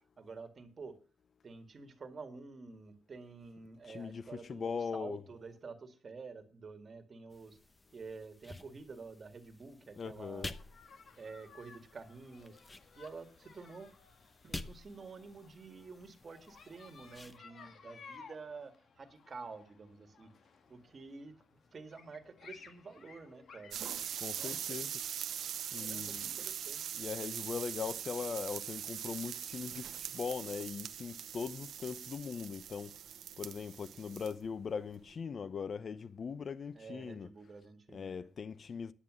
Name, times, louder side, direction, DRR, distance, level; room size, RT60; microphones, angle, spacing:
voice 1, 0.2-1.0 1.4-7.6 7.9-10.5 11.2-13.9 14.4-20.3 20.7-23.8 24.4-24.9 25.8-26.9 36.7-38.3, right 4 dB, 45° right, 1.9 m, -49 dB
voice 2, 3.9-5.2 10.0-10.5 24.2-24.9 25.7-26.3 26.9-33.0 33.4-37.3 37.9-38.9, left 6 dB, 50° left, 0.6 m, -40 dB
sound 1, 7.3-17.4, left 2 dB, 20° left, 0.8 m, -51 dB
sound 2, 10.5-24.2, left 5 dB, 65° left, 1.7 m, -58 dB
sound 3, 23.7-34.5 34.8-35.1, right 9 dB, 85° right, 0.7 m, -42 dB
9.8 x 9.1 x 6.2 m
cardioid pair, 100°, 0 cm